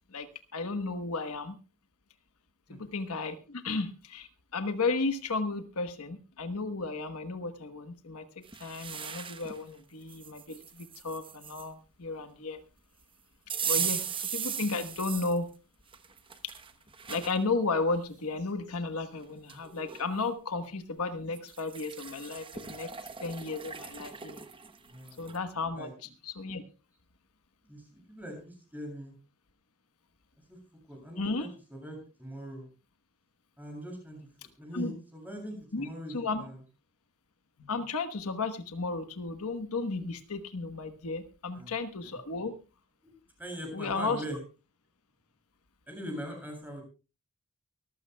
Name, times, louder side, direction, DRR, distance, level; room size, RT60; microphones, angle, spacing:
voice 1, 0.1-1.6 2.7-12.6 13.7-15.5 16.4-16.5 17.1-22.9 23.2-24.4 25.2-26.6 31.2-31.5 34.7-34.9 35.7-36.4 37.6-42.5 43.7-44.2, left 3 dB, 75° left, 9 dB, 1.2 m, -34 dB
sound 1, 8.4-9.6 10.1-11.7 13.5-15.4 15.9-17.4 17.9-18.0 19.1-19.2 19.5-20.1 21.3-25.4, right 7 dB, 25° right, 1.0 m, -38 dB
voice 2, 24.8-25.4 25.7-25.9 27.6-29.1 30.5-30.6 30.9-32.7 33.6-34.2 34.6-36.6 41.5-41.8 42.0-42.2 43.0-43.1 43.4-44.4 45.9-46.8, equal, 10° right, 1 dB, 7.4 m, -42 dB
24.0 x 14.5 x 2.3 m, 0.32 s
head